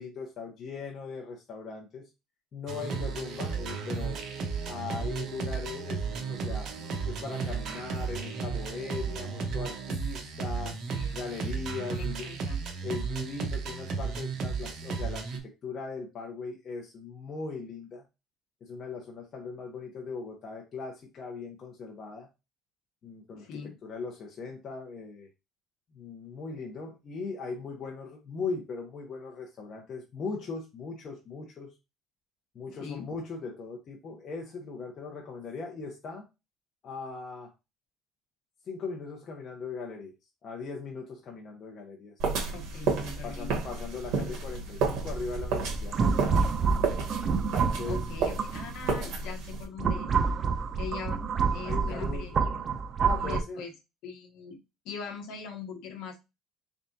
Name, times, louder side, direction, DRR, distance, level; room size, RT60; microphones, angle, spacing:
voice 1, 0.0-2.1 2.5-4.2 4.6-6.7 7.0-10.8 11.1-12.3 12.8-18.0 18.6-22.3 23.0-25.3 25.9-31.7 32.5-36.3 36.8-37.5 38.7-40.1 40.4-42.4 43.2-46.5 47.4-48.1 51.6-52.5 53.0-53.6, left 4 dB, 40° left, 0 dB, 0.8 m, -39 dB
sound 1, 2.7-15.4, right 5 dB, 55° right, 0.9 m, -34 dB
voice 2, 10.6-11.2 11.9-12.6 23.3-23.8 32.7-33.1 42.5-43.5 47.8-50.1 50.8-51.2 51.5-52.7 53.2-53.7 54.0-54.6 54.8-56.2, left 6 dB, 75° left, 3 dB, 1.0 m, -42 dB
sound 2, 42.2-49.6, right 4 dB, 75° right, 1.2 m, -32 dB
sound 3, 45.1-48.9 49.5-53.4, right 5 dB, 35° right, 0.5 m, -28 dB
4.0 x 3.5 x 2.7 m, 0.25 s
cardioid pair, 130°, 0 cm